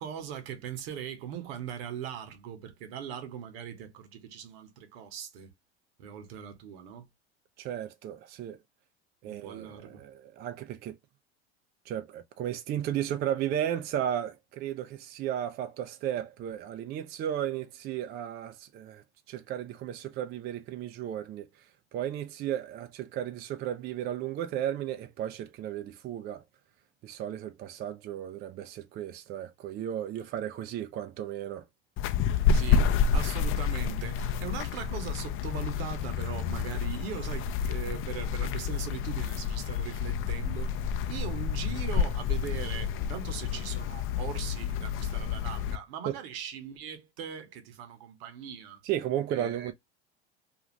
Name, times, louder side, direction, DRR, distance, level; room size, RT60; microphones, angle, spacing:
voice 1, 0.0-5.5 6.0-7.1 9.2-10.0 32.4-40.7 41.1-48.8 49.3-49.7, right 8 dB, 65° right, 0.9 m, -40 dB
voice 2, 7.6-8.6 9.2-11.0 11.9-21.7 21.9-26.4 27.0-31.7 46.1-46.2 48.8-49.7, right 11 dB, 30° right, 0.4 m, -34 dB
sound 1, 32.0-45.8, left 6 dB, 40° left, 0.6 m, -29 dB
2.6 x 2.3 x 3.0 m
hypercardioid pair, 85°, 32 cm